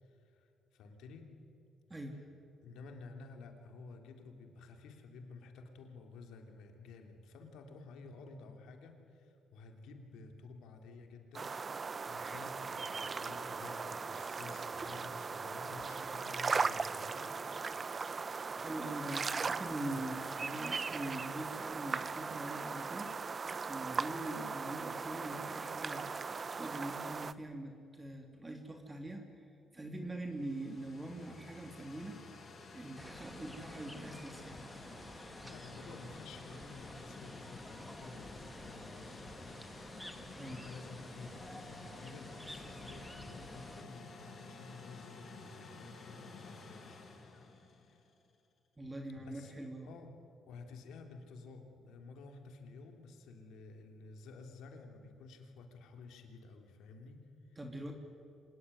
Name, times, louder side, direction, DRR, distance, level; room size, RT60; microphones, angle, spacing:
voice 1, 0.0-1.3 2.1-2.2 2.6-17.8 18.8-19.1 19.9-20.2 35.4-39.4 40.4-48.1 49.2-49.5 49.8-50.1 50.4-57.6, left 3 dB, 85° left, 4 dB, 3.3 m, -52 dB
voice 2, 1.9-2.2 18.6-23.4 23.7-26.1 26.5-29.5 29.7-32.2 32.7-34.6 40.3-40.6 48.8-50.0 57.6-57.9, right 1 dB, 20° right, 3 dB, 2.9 m, -43 dB
sound 1, 11.3-27.3, right 5 dB, 35° right, 0.9 m, -38 dB
sound 2, 30.0-48.2, left 3 dB, 50° left, 6.9 m, -52 dB
sound 3, 33.0-43.8, equal, ahead, 2.2 m, -51 dB
26.0 x 19.0 x 9.9 m, 2.8 s
cardioid pair, 90°, 0 cm